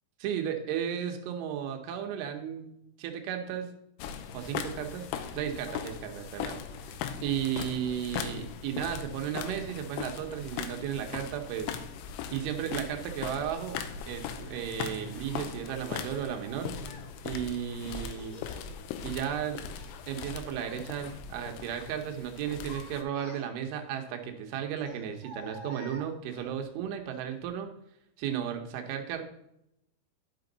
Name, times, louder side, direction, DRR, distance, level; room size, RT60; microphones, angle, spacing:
voice 1, 0.2-3.7 4.3-5.1 5.4-11.8 12.3-16.8 17.2-18.4 19.0-19.6 20.1-27.7 28.2-29.2, right 9 dB, 80° right, 4 dB, 3.4 m, -34 dB
sound 1, 4.0-23.0, left 7 dB, 85° left, 3.2 m, -39 dB
Child speech kid speaking, 15.3-15.5 16.4-17.1 18.0-18.6 19.1-20.3 20.6-20.9 21.3-21.9 22.4-23.8 24.8-26.5, left 1 dB, 50° left, 1.9 m, -50 dB
11.0 x 6.1 x 3.9 m, 0.79 s
omnidirectional pair, 5.7 m